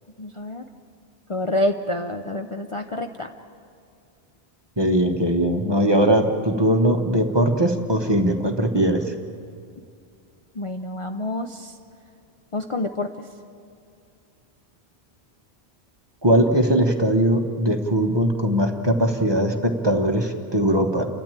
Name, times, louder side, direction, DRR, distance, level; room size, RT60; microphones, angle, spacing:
voice 1, 0.2-0.6 1.3-3.3 10.5-11.8 12.5-13.3, left 1 dB, 35° left, 5 dB, 0.6 m, -27 dB
voice 2, 4.8-9.1 16.2-21.1, right 1 dB, 25° right, 5 dB, 1.1 m, -20 dB
29.5 x 12.0 x 8.9 m, 2.4 s
omnidirectional pair, 1.1 m